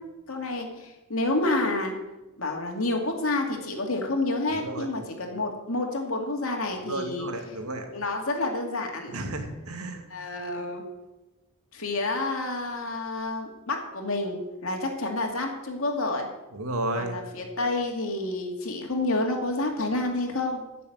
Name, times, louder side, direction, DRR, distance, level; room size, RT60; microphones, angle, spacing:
voice 1, 0.3-1.9 2.4-7.3 7.9-9.1 10.1-10.8 11.7-16.3 16.9-20.6, left 2 dB, 75° left, 2 dB, 2.5 m, -29 dB
voice 2, 4.5-4.9 6.8-7.9 9.1-10.1 16.5-17.2, right 1 dB, 85° right, 4 dB, 2.2 m, -32 dB
15.0 x 6.9 x 8.0 m, 1.0 s
head